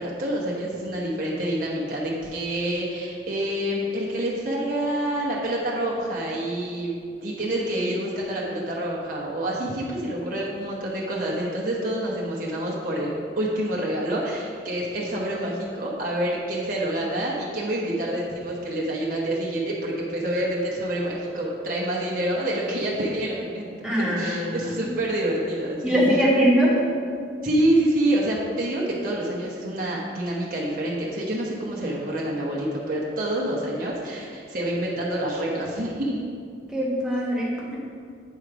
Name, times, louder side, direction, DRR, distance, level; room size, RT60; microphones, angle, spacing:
voice 1, 0.0-6.9 7.2-26.2 27.4-36.2, right 1 dB, 50° right, -5 dB, 0.9 m, -27 dB
voice 2, 23.8-24.9 25.8-26.7 36.7-37.8, equal, 5° right, -6 dB, 1.1 m, -22 dB
8.3 x 3.1 x 4.9 m, 2.3 s
head